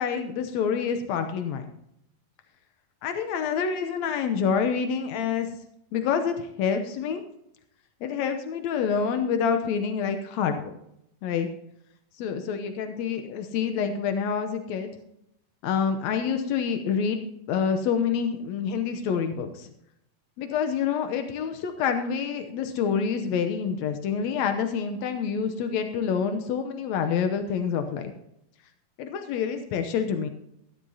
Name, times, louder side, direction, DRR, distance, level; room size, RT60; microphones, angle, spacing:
voice 1, 0.0-1.7 3.0-5.5 5.9-7.2 8.0-10.8 11.2-11.5 12.2-15.0 15.6-17.2 17.5-19.7 20.4-28.1 29.0-30.3, left 6 dB, 85° left, 7 dB, 1.6 m, -27 dB
13.5 x 12.5 x 2.8 m, 0.78 s
omnidirectional pair, 4.2 m